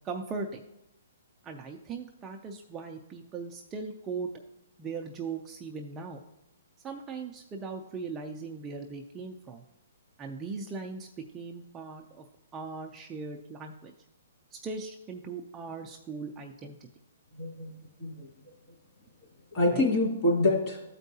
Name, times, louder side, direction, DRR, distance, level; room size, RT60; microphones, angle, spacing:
voice 1, 0.0-0.6 1.4-4.3 4.8-6.2 6.8-9.6 10.2-11.1 11.3-12.2 12.5-13.9 14.5-16.8 19.7-19.9, right 4 dB, 15° right, 2 dB, 0.4 m, -39 dB
voice 2, 17.4-17.7 18.0-18.3 19.5-20.9, left 2 dB, 30° left, -4 dB, 2.4 m, -26 dB
13.0 x 4.5 x 2.7 m, 0.91 s
hypercardioid pair, 160°, 0 cm